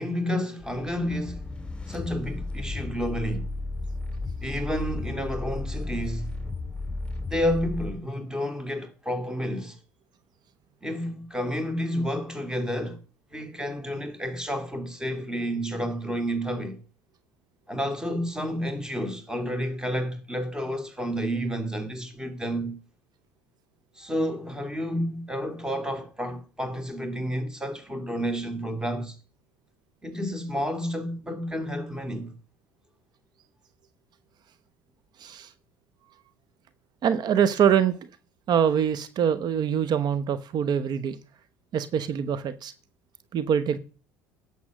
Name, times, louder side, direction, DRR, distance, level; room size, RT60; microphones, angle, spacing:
voice 1, 0.0-1.4 1.9-3.5 4.4-6.4 7.3-9.8 10.8-13.0 13.3-16.8 17.7-22.8 24.0-29.2 30.0-32.3, equal, 10° right, 2.8 m, -30 dB
sound 1, 0.6-7.9, left 2 dB, 10° left, 2.5 m, -34 dB
voice 2, 35.2-35.5 37.0-38.0 38.5-41.2 41.7-42.7 43.3-43.8, right 8 dB, 50° right, 0.9 m, -24 dB
11.0 x 7.1 x 6.2 m
hypercardioid pair, 80°, 9 cm